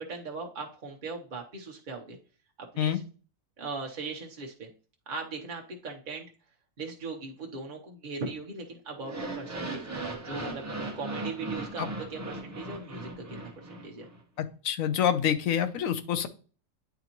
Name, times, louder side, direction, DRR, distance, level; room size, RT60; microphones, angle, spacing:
voice 1, 0.0-2.2 2.6-3.0 3.6-4.7 5.1-6.3 6.8-9.9 10.2-10.7 11.0-14.0, right 4 dB, 45° right, 0 dB, 0.9 m, -39 dB
sound 1, 9.0-14.2, right 2 dB, 15° right, 0.7 m, -37 dB
voice 2, 14.4-16.3, left 9 dB, 90° left, 11 dB, 1.1 m, -27 dB
9.4 x 4.0 x 2.9 m, 0.38 s
omnidirectional pair, 1.4 m